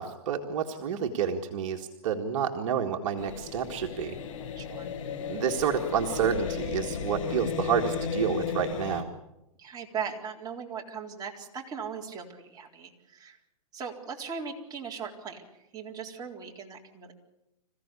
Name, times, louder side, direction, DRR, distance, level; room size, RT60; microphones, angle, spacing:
voice 1, 0.0-4.2 5.3-9.1, right 7 dB, 60° right, 3 dB, 2.0 m, -29 dB
sound 1, 3.2-9.0, left 6 dB, 60° left, 3.2 m, -34 dB
voice 2, 4.6-4.9 9.6-13.4 13.7-17.1, right 6 dB, 20° right, -1 dB, 4.0 m, -39 dB
26.5 x 16.0 x 8.4 m, 0.92 s
hypercardioid pair, 130°, 18 cm